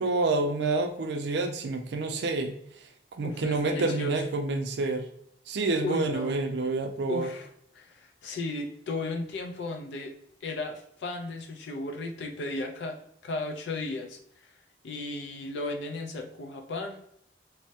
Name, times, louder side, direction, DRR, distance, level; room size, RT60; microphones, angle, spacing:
voice 1, 0.0-2.5 2.8-2.9 3.2-5.1 5.5-7.3, right 3 dB, 75° right, 5 dB, 0.4 m, -28 dB
voice 2, 3.2-4.2 5.8-6.4 7.1-7.5 7.7-10.1 10.4-14.2 14.8-17.0, left 2 dB, 85° left, 4 dB, 0.4 m, -35 dB
3.2 x 2.0 x 2.7 m, 0.70 s
head